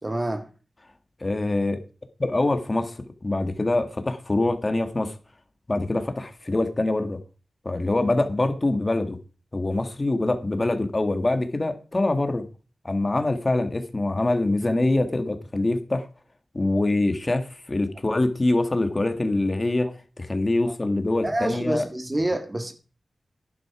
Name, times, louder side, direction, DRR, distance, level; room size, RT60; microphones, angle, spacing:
voice 1, 0.0-0.5 21.2-22.7, right 1 dB, 30° right, 1.8 m, -27 dB
voice 2, 1.2-1.8 2.2-5.2 5.7-7.2 7.6-9.2 9.5-12.5 12.8-16.1 16.5-19.9 20.2-21.9, left 2 dB, 35° left, 1.8 m, -24 dB
11.0 x 11.0 x 4.9 m
wide cardioid pair, 65°, 0 cm